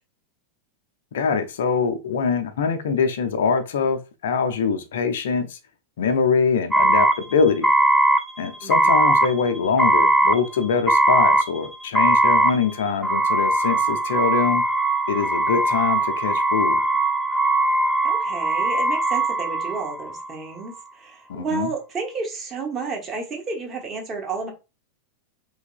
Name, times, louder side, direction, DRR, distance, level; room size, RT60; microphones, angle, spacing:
voice 1, 1.1-5.6 6.0-7.7 8.4-14.6 15.1-16.8 21.3-21.7, left 5 dB, 60° left, 0.5 m, -23 dB
sound 1, 6.7-20.3, right 2 dB, ahead, 0.4 m, -20 dB
voice 2, 8.6-9.0 18.0-24.5, right 4 dB, 25° right, 0.9 m, -31 dB
3.3 x 2.9 x 2.3 m
figure-of-eight pair, 90°, 0 cm